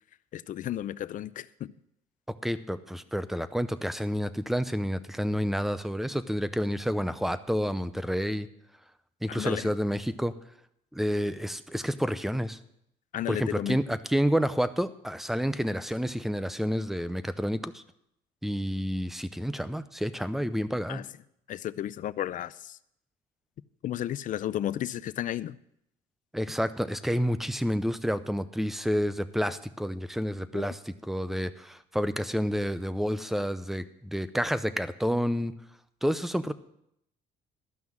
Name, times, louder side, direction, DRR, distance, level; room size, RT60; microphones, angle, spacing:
voice 1, 0.3-1.7 9.3-9.7 13.1-13.8 20.9-21.0 21.5-22.8 23.8-25.6 30.5-30.7, left 12 dB, 50° left, 17 dB, 0.5 m, -33 dB
voice 2, 2.4-8.5 9.2-10.3 10.9-12.6 13.3-17.8 18.4-21.0 26.3-35.5 36.0-36.5, equal, ahead, 13 dB, 0.6 m, -29 dB
13.0 x 6.0 x 7.3 m, 0.76 s
cardioid pair, 110°, 17 cm